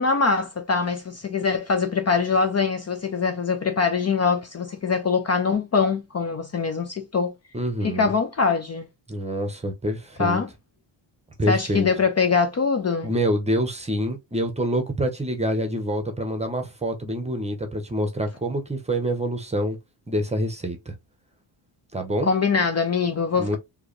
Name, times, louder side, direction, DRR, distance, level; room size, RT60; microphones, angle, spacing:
voice 1, 0.0-7.3 7.8-8.9 10.2-10.5 11.5-13.1 22.2-23.6, left 5 dB, 35° left, 0.6 m, -23 dB
voice 2, 7.5-8.1 9.1-10.4 11.4-11.9 13.0-19.8 20.1-21.0 21.9-22.3 23.4-23.6, equal, 15° right, 0.8 m, -26 dB
4.6 x 2.9 x 3.2 m
wide cardioid pair, 175°, 49 cm